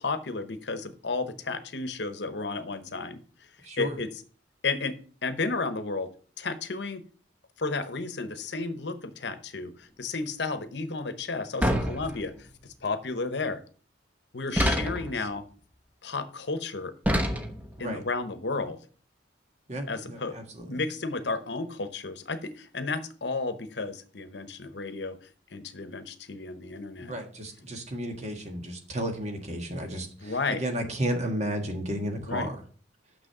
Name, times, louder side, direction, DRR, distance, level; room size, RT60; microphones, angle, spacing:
voice 1, 0.0-3.2 3.8-4.1 4.6-6.1 6.4-7.0 7.6-13.6 14.3-15.5 16.0-16.9 17.8-18.8 19.9-20.4 20.7-25.2 25.5-27.1 30.2-30.6 32.3-32.5, left 3 dB, 65° left, 11 dB, 0.9 m, -32 dB
voice 2, 3.6-4.0 14.5-15.0 17.8-18.0 19.7-20.6 27.0-32.5, right 1 dB, 35° right, 4 dB, 1.6 m, -33 dB
sound 1, 11.6-12.5 14.6-15.2 17.0-17.8, equal, 10° right, 1.0 m, -27 dB
6.3 x 6.2 x 6.5 m, 0.42 s
head